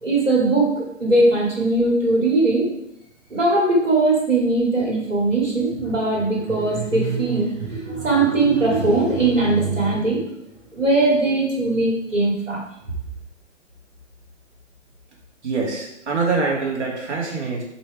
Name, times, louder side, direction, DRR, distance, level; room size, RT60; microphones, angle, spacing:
voice 1, 0.0-2.7 3.3-10.3 10.7-12.6, right 2 dB, 80° right, -3 dB, 2.4 m, -20 dB
voice 2, 15.4-17.6, right 4 dB, 65° right, -2 dB, 2.3 m, -24 dB
5.5 x 4.5 x 4.7 m, 0.79 s
figure-of-eight pair, 125°, 37 cm